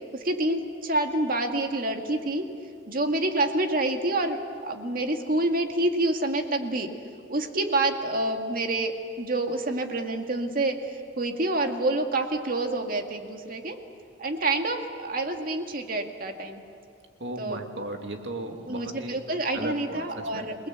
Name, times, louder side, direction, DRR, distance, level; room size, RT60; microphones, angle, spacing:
voice 1, 0.1-2.4 2.9-6.9 7.3-10.8 11.2-13.8 14.2-16.6 17.4-17.6 18.7-20.6, right 2 dB, 55° right, 4 dB, 2.0 m, -27 dB
voice 2, 17.2-19.3 19.5-20.5, right 1 dB, 75° right, 4 dB, 2.5 m, -36 dB
28.0 x 20.0 x 8.1 m, 2.3 s
head